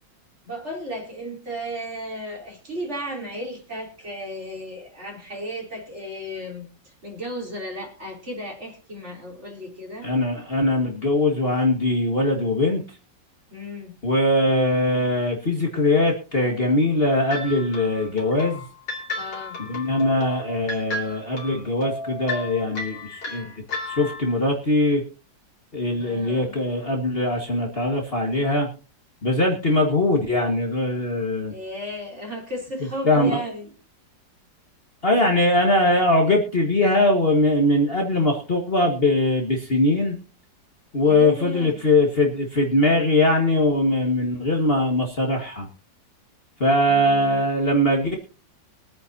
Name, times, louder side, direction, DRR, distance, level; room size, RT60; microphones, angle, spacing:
voice 1, 0.4-10.1 13.5-13.9 19.2-19.6 26.0-26.6 31.5-33.7 41.0-41.8 46.8-47.4, equal, 35° right, 0 dB, 3.7 m, -34 dB
voice 2, 10.0-12.8 14.0-18.6 19.6-23.5 23.9-25.0 25.7-28.7 29.2-31.5 33.1-33.3 35.0-40.2 40.9-45.7 46.6-48.2, left 1 dB, 35° left, 1 dB, 1.8 m, -21 dB
sound 1, 17.3-24.4, left 2 dB, 75° left, 3.4 m, -34 dB
23.0 x 9.1 x 2.8 m, 0.34 s
omnidirectional pair, 2.0 m